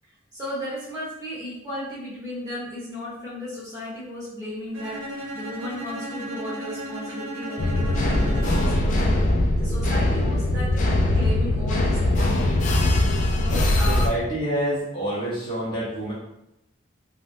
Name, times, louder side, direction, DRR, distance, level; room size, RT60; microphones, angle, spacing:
voice 1, 0.3-9.2 9.5-13.0 13.4-14.1, left 1 dB, 15° right, -8 dB, 1.0 m, -35 dB
Bowed string instrument, 4.7-9.0, right 1 dB, 70° right, 0.5 m, -35 dB
sound 1, 7.6-14.1, left 1 dB, 40° left, 0.3 m, -21 dB
voice 2, 13.5-16.1, right 1 dB, 25° left, -9 dB, 0.8 m, -28 dB
3.4 x 2.1 x 2.6 m, 0.85 s
head